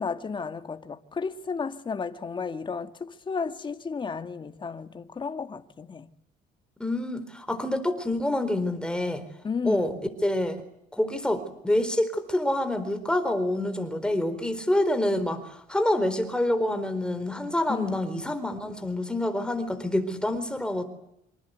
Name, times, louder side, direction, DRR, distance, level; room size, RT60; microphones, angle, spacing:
voice 1, 0.0-6.1 9.4-9.9 17.7-17.9, left 5 dB, 30° left, 1.8 m, -33 dB
voice 2, 6.8-9.2 9.6-9.9 10.2-10.6 10.9-20.8, left 1 dB, 5° left, 4.1 m, -27 dB
27.0 x 26.0 x 8.2 m
cardioid pair, 110°, 17 cm